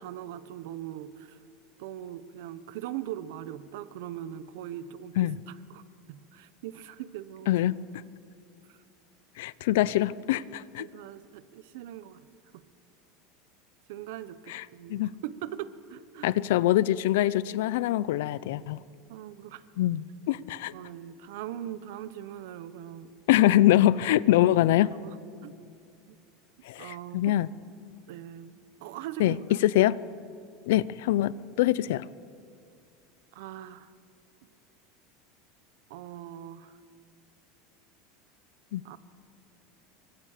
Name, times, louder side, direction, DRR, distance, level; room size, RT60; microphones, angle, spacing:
voice 1, 0.0-1.4 1.8-5.8 6.1-7.5 8.7-8.8 10.8-12.3 12.5-12.6 13.9-16.3 18.2-18.8 19.1-19.6 20.7-23.1 24.4-24.5 25.0-25.2 25.4-25.6 26.1-26.2 26.8-27.3 28.1-29.6 33.3-33.9 35.9-36.8 38.8-39.0, right 11 dB, 60° right, 14 dB, 1.1 m, -41 dB
voice 2, 7.5-7.8 9.4-10.8 14.5-14.6 14.9-15.1 16.2-18.8 19.8-20.7 23.3-24.9 26.7-27.5 29.2-29.4 29.6-30.0 30.7-31.3 31.6-32.0 38.7-38.8, left 14 dB, 70° left, 19 dB, 0.7 m, -24 dB
29.5 x 24.0 x 6.8 m, 2.4 s
supercardioid pair, 175°, 0 cm